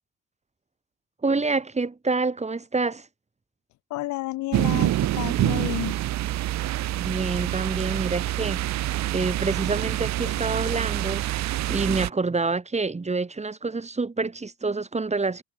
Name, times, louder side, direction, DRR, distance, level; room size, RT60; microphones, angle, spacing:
voice 1, 1.2-3.1 7.0-8.6 9.1-11.3 11.7-15.4, right 3 dB, 25° right, 7.9 m, -27 dB
voice 2, 3.9-6.0 10.3-10.4, left 18 dB, 75° left, 5.6 m, -31 dB
sound 1, 4.5-12.1, right 14 dB, 65° right, 3.4 m, -26 dB
supercardioid pair, 75°, 29 cm